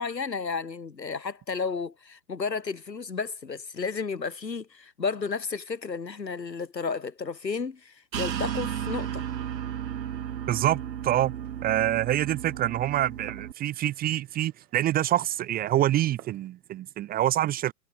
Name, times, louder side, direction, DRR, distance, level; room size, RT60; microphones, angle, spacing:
voice 1, 0.0-9.3, left 5 dB, 85° left, 3.4 m, -32 dB
sound 1, 8.1-13.5, right 10 dB, 85° right, 0.7 m, -34 dB
voice 2, 10.5-11.3 11.6-17.7, right 13 dB, 20° right, 0.8 m, -26 dB
Glass, 11.3-16.5, right 12 dB, 60° right, 7.2 m, -56 dB
figure-of-eight pair, 110°, 49 cm